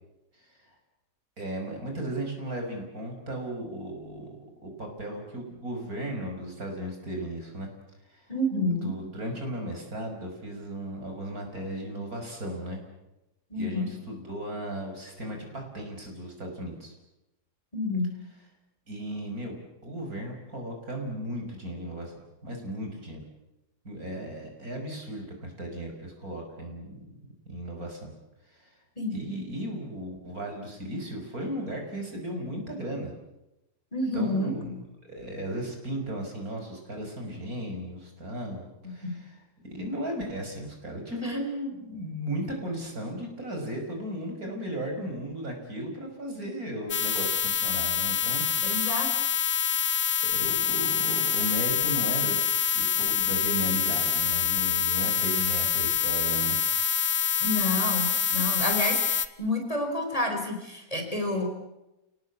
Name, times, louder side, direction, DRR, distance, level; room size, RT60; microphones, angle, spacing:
voice 1, 1.4-7.7 8.1-8.3 8.8-12.8 13.5-16.9 18.9-23.2 23.8-27.0 27.5-28.1 28.5-28.7 29.1-33.1 34.1-39.4 39.7-48.7 49.1-49.4 50.2-52.4 52.7-56.6, right 1 dB, 60° right, 3 dB, 6.2 m, -36 dB
voice 2, 8.3-8.9 13.5-13.9 17.7-18.1 29.0-29.2 33.9-34.5 38.8-39.2 41.2-41.4 48.6-49.1 57.4-61.5, left 1 dB, 20° left, 3 dB, 4.4 m, -29 dB
sound 1, 46.9-59.3, left 8 dB, 55° left, 1.4 m, -26 dB
29.0 x 19.0 x 8.5 m, 0.95 s
omnidirectional pair, 1.8 m